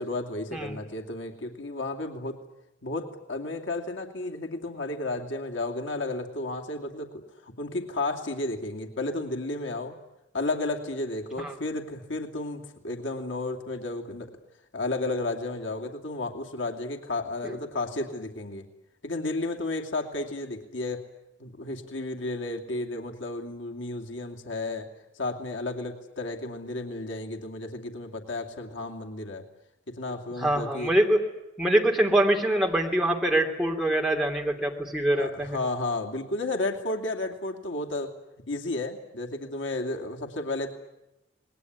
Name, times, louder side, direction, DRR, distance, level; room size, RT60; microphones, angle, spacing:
voice 1, 0.0-2.4 2.8-10.0 10.3-14.3 14.7-18.7 19.0-21.0 21.4-24.9 25.2-29.5 29.9-30.9 35.2-38.1 38.5-40.7, left 2 dB, 85° left, 2 dB, 2.6 m, -32 dB
voice 2, 30.4-31.2 31.6-35.6, right 1 dB, ahead, 0 dB, 3.1 m, -24 dB
27.0 x 20.5 x 9.6 m, 0.91 s
head